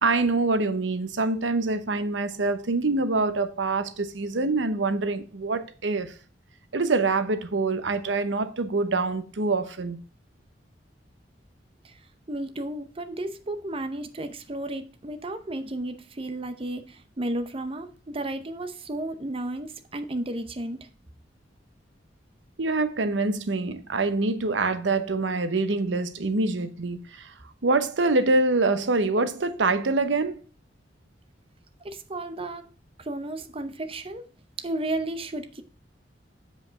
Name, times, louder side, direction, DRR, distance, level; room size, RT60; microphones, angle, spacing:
voice 1, 0.0-6.1 6.7-10.0 22.6-27.3 27.6-30.4, right 3 dB, 85° right, 0.9 m, -25 dB
voice 2, 12.3-20.9 31.8-32.7 33.0-34.2 34.6-35.6, right 1 dB, 30° right, 0.7 m, -33 dB
7.7 x 5.2 x 5.0 m
head